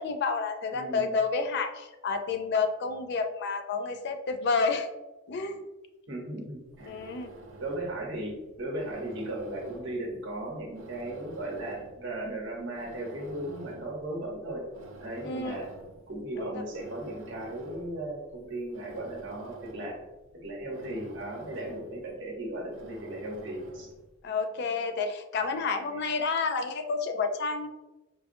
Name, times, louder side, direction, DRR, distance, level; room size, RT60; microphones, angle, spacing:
voice 1, 0.0-4.9 5.3-5.7 6.9-7.3 15.2-15.7 16.3-16.6 24.2-27.7, left 4 dB, 55° left, 7 dB, 0.3 m, -30 dB
voice 2, 0.7-1.1 6.1-6.9 7.6-14.6 15.0-15.7 16.1-19.9 20.4-23.9 25.9-26.0, right 1 dB, 65° right, -2 dB, 1.0 m, -36 dB
sound 1, 6.5-24.1, right 2 dB, 85° right, 0.6 m, -49 dB
4.6 x 2.4 x 2.5 m, 1.1 s
head